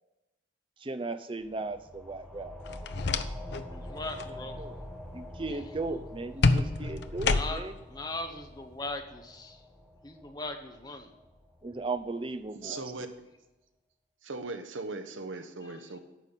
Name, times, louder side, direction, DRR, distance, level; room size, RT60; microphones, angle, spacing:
voice 1, 0.8-2.5 2.8-2.9 4.6-4.8 5.1-7.7 11.6-12.8, right 3 dB, 25° right, 10 dB, 0.5 m, -36 dB
sound 1, 1.3-12.6, left 1 dB, ahead, 1.7 m, -46 dB
sound 2, 2.7-3.7 4.0-4.3 6.4-7.8, left 3 dB, 55° left, 0.5 m, -28 dB
voice 2, 3.7-4.6 5.5-5.6 7.2-7.6 7.9-9.6 10.0-11.1 15.6-16.0, left 2 dB, 20° left, 4 dB, 0.9 m, -39 dB
voice 3, 12.6-13.1 14.2-16.0, right 3 dB, 75° right, 7 dB, 1.0 m, -38 dB
9.1 x 5.7 x 8.2 m, 0.99 s
head